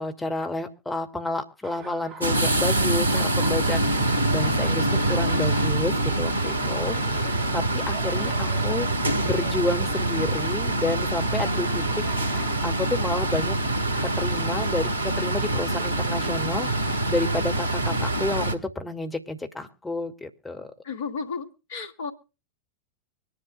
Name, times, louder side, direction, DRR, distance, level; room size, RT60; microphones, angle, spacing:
voice 1, 0.0-13.6 13.9-20.7, left 2 dB, 10° left, 6 dB, 1.9 m, -30 dB
Laughter, 1.6-12.5, right 4 dB, 30° right, 1.7 m, -45 dB
sound 1, 2.2-18.5, right 2 dB, 85° left, 1.7 m, -25 dB
voice 2, 20.8-22.1, left 5 dB, 55° left, 8 dB, 1.9 m, -34 dB
24.5 x 11.0 x 2.2 m, 0.32 s
figure-of-eight pair, 90°, 0 cm